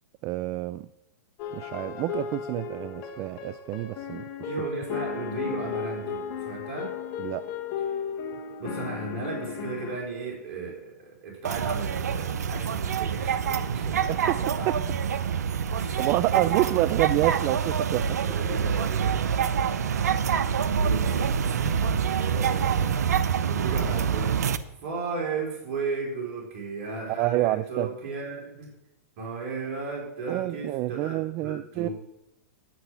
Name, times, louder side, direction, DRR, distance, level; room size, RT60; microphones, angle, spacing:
voice 1, 0.2-0.9 1.5-4.5 7.2-7.5 14.1-14.8 15.4-15.7 16.0-18.2 27.2-27.9 30.3-31.9, right 17 dB, 35° right, 17 dB, 0.3 m, -28 dB
sound 1, 1.4-10.0, left 7 dB, 40° left, 1.5 m, -35 dB
voice 2, 4.5-6.9 8.6-14.9 15.7-16.0 16.3-16.8 18.3-19.3 20.7-24.5 24.8-28.7 29.2-31.9, right 4 dB, 55° right, -1 dB, 3.9 m, -35 dB
sound 2, 11.5-24.6, right 7 dB, 80° right, 0.7 m, -26 dB
9.7 x 6.6 x 7.1 m, 0.87 s
hypercardioid pair, 120°, 9 cm